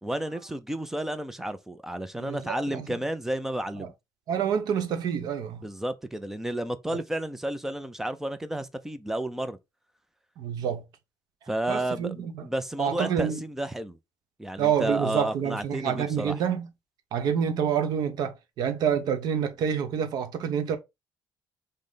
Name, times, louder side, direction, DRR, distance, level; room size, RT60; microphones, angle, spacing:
voice 1, 0.0-3.9 5.6-9.6 11.5-14.0 14.4-16.4, right 1 dB, 5° right, 0.4 m, -32 dB
voice 2, 2.2-2.9 3.8-3.9 4.3-5.6 6.9-7.0 10.4-10.8 11.7-12.4 12.8-13.4 14.6-16.7 17.1-20.8, right 8 dB, 60° right, 0.8 m, -27 dB
5.3 x 2.0 x 3.8 m
cardioid pair, 170°, 8 cm